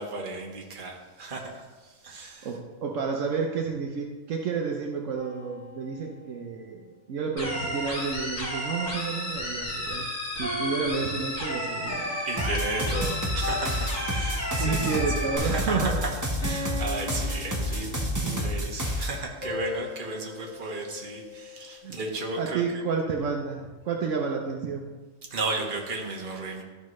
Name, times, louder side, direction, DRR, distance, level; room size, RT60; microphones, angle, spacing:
voice 1, 0.0-2.5 12.3-22.6 25.3-26.6, right 2 dB, 40° right, 0 dB, 1.3 m, -34 dB
voice 2, 2.4-10.1 10.4-12.2 14.6-16.0 21.8-22.0 22.4-24.9, right 5 dB, 70° right, 1 dB, 1.1 m, -30 dB
sound 1, 5.1-6.4 7.4-9.9 10.4-12.1 12.7-12.9 13.4-15.0 15.4-15.7 16.4-18.3 19.4-21.8, left 2 dB, 55° left, 2.3 m, -40 dB
sound 2, 7.4-15.4, left 1 dB, 80° left, 2.4 m, -32 dB
sound 3, 12.4-19.1, equal, 15° right, 0.8 m, -29 dB
13.0 x 5.3 x 3.1 m, 1.3 s
omnidirectional pair, 1.4 m